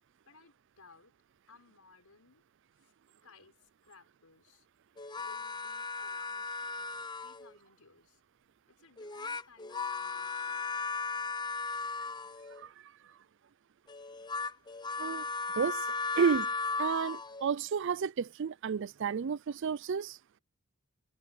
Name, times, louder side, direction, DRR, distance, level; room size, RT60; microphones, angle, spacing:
voice 1, 0.3-1.1 1.5-2.4 2.8-2.9 3.2-4.7 5.2-8.2 8.7-10.7, left 4 dB, 90° left, 5.6 m, -61 dB
sound 1, 5.0-7.6 9.0-12.6 13.9-17.5, left 4 dB, 20° left, 0.7 m, -36 dB
voice 2, 15.6-15.9 16.2-16.5 16.8-20.2, right 6 dB, 55° right, 0.4 m, -31 dB
head